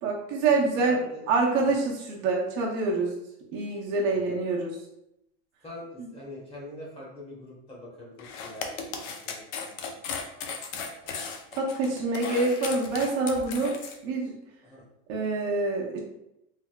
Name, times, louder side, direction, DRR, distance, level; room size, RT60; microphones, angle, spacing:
voice 1, 0.0-1.0 1.3-3.1 3.5-4.8 6.0-6.1 11.6-14.3 15.1-16.0, right 3 dB, 45° right, -2 dB, 0.7 m, -26 dB
voice 2, 0.8-1.3 1.6-1.7 4.1-4.2 5.6-8.8 9.0-10.0 14.6-14.8, left 1 dB, 15° left, -5 dB, 1.0 m, -44 dB
sound 1, 8.2-14.0, left 5 dB, 45° left, 0.5 m, -36 dB
3.5 x 2.6 x 2.2 m, 0.82 s
supercardioid pair, 140°, 37 cm